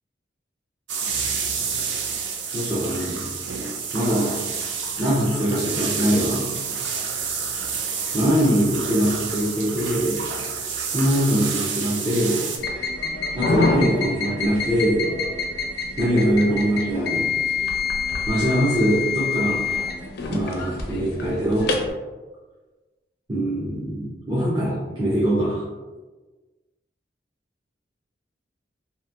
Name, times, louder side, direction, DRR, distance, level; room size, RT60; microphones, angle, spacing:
sound 1, 0.9-12.6, right 6 dB, 85° right, 0.4 m, -29 dB
voice 1, 2.5-3.3 3.9-4.4 5.0-6.5 8.1-10.2 10.9-12.5 13.4-15.0 16.0-17.3 18.3-19.6 20.3-21.8 23.3-25.6, equal, 25° right, -8 dB, 0.5 m, -22 dB
sound 2, 12.6-21.9, left 4 dB, 65° left, 0.4 m, -26 dB
2.9 x 2.5 x 2.3 m, 1.3 s
head